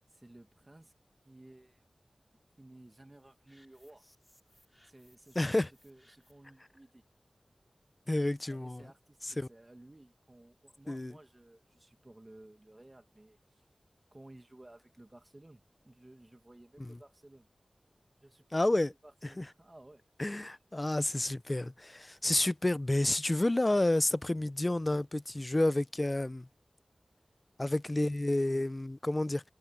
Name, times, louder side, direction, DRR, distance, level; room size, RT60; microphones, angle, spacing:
voice 1, 0.1-0.9 1.3-1.8 2.6-4.1 4.8-7.0 8.4-13.6 14.1-17.5 18.2-20.0, right 1 dB, 30° right, 1.9 m, -56 dB
sound 1, 3.5-6.5, equal, 5° left, 4.6 m, -67 dB
voice 2, 5.4-5.7 8.1-8.8 9.4-9.5 10.9-11.1 16.8-17.0 18.5-18.9 19.4-19.5 20.2-26.5 27.6-29.4, left 1 dB, 30° left, 0.6 m, -30 dB
wide cardioid pair, 80°, 0 cm